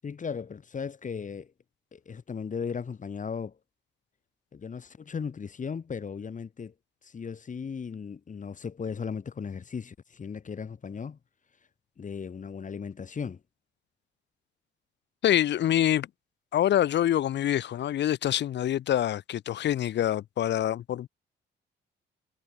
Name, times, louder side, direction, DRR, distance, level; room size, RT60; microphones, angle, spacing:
voice 1, 0.0-1.5 1.9-3.6 4.5-6.7 7.0-11.2 12.0-13.4, left 6 dB, 40° left, 2.5 m, -36 dB
voice 2, 15.2-16.1 16.5-21.1, left 11 dB, 65° left, 0.9 m, -25 dB
cardioid pair, 90°, 20 cm